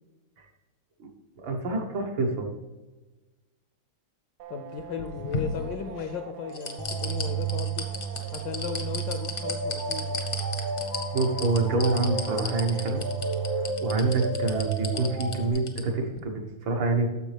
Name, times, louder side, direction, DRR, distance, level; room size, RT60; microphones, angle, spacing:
voice 1, 1.4-2.5 11.1-13.0 13.8-17.1, right 3 dB, 65° right, 2 dB, 1.8 m, -26 dB
sound 1, 4.4-13.7, right 10 dB, 85° right, 1.6 m, -44 dB
voice 2, 4.5-7.9 8.3-10.1, left 7 dB, 75° left, 7 dB, 1.1 m, -36 dB
sound 2, 4.8-6.1 6.5-15.8 16.2-16.3, left 3 dB, 50° left, 0.6 m, -34 dB
sound 3, 6.8-15.5, right 4 dB, 20° right, 0.7 m, -32 dB
10.5 x 7.1 x 3.3 m, 1.2 s
omnidirectional pair, 2.3 m